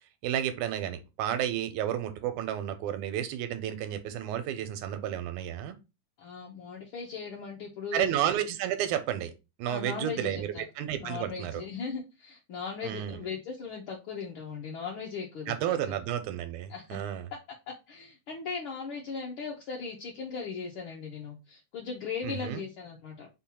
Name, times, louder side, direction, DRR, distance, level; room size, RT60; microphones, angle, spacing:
voice 1, 0.2-5.8 7.9-9.3 9.6-11.6 12.8-13.2 15.5-17.3 22.2-22.6, right 10 dB, 90° right, 9 dB, 2.0 m, -31 dB
voice 2, 6.2-8.1 9.6-10.6 11.0-15.6 15.9-16.0 16.7-17.0 17.7-23.3, left 5 dB, 85° left, -2 dB, 1.1 m, -38 dB
5.4 x 2.3 x 4.2 m, 0.26 s
omnidirectional pair, 3.4 m